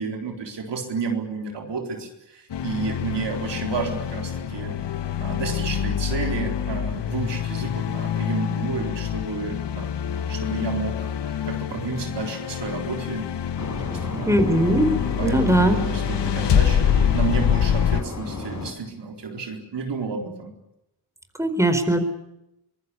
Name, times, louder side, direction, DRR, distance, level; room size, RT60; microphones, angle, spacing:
voice 1, 0.0-4.7 5.2-9.9 10.3-13.2 13.8-14.4 15.2-20.5, right 5 dB, 85° right, 3 dB, 4.3 m, -31 dB
sound 1, 2.5-18.0, left 9 dB, 85° left, 1.1 m, -26 dB
sound 2, 13.6-18.7, left 3 dB, 45° left, 5.0 m, -33 dB
voice 2, 14.3-15.0 15.2-15.8 21.4-22.0, right 1 dB, 5° right, 8 dB, 4.4 m, -19 dB
24.5 x 19.5 x 8.6 m, 0.85 s
cardioid pair, 65°, 41 cm